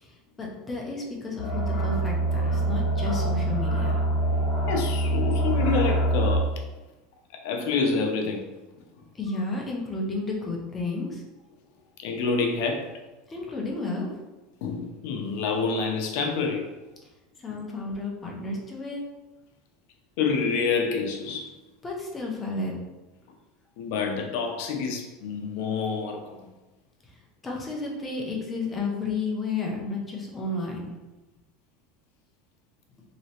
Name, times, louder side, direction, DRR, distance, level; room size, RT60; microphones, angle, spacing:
voice 1, 0.4-4.0 9.1-11.2 13.3-14.1 17.4-19.0 21.8-22.7 27.4-30.9, left 3 dB, 15° left, -1 dB, 0.6 m, -32 dB
sound 1, 1.4-6.4, right 1 dB, 55° left, 1.1 m, -25 dB
voice 2, 4.7-6.5 7.3-8.5 12.0-12.9 14.6-16.7 17.5-17.6 20.2-21.5 23.8-26.5, left 4 dB, 70° left, 3 dB, 0.6 m, -27 dB
3.1 x 2.9 x 2.8 m, 1.1 s
supercardioid pair, 150°, 0 cm